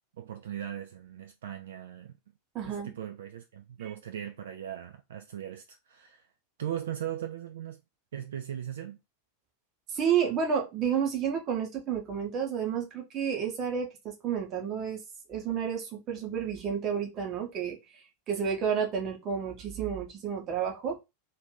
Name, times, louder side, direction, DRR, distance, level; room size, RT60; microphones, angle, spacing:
voice 1, 0.2-2.1 2.6-6.3 6.6-7.8 8.1-9.0, right 10 dB, 60° right, 0.3 m, -38 dB
voice 2, 2.5-2.9 9.9-15.0 15.3-21.0, right 7 dB, 35° right, 0.9 m, -31 dB
2.6 x 2.6 x 3.8 m
figure-of-eight pair, 90°, 0 cm